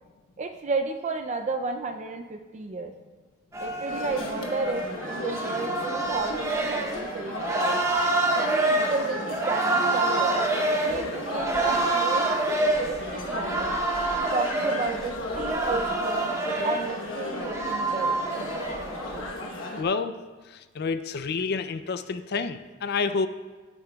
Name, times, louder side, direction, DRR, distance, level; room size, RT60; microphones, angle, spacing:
voice 1, 0.4-2.9 3.6-7.8 8.4-10.4 10.8-12.3 12.6-13.8 14.3-16.3 16.6-18.2, right 3 dB, 35° right, 5 dB, 0.4 m, -32 dB
sound 1, 3.5-19.3, right 2 dB, 15° right, 0.8 m, -27 dB
sound 2, 3.9-19.8, left 1 dB, 70° left, 1.1 m, -35 dB
voice 2, 19.8-20.2 20.7-23.3, left 4 dB, 50° left, 12 dB, 0.4 m, -28 dB
15.0 x 8.6 x 2.3 m, 1.3 s
head